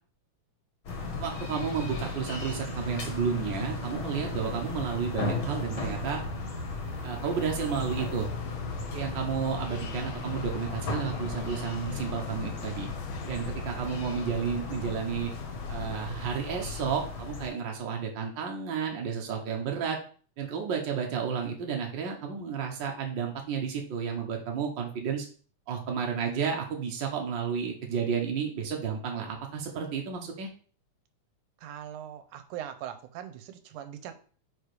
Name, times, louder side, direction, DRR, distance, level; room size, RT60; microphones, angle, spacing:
sound 1, 0.8-17.5, left 2 dB, 50° left, 1.9 m, -36 dB
voice 1, 1.2-6.2 7.0-8.3 8.9-12.9 13.3-15.3 15.7-20.0 20.4-25.3 25.7-30.5, right 6 dB, 65° right, 1 dB, 1.1 m, -32 dB
sound 2, 6.7-17.5, left 9 dB, 80° left, 1.4 m, -43 dB
voice 2, 31.6-34.2, right 10 dB, 85° right, 9 dB, 2.2 m, -41 dB
5.1 x 4.8 x 4.8 m, 0.42 s
omnidirectional pair, 3.5 m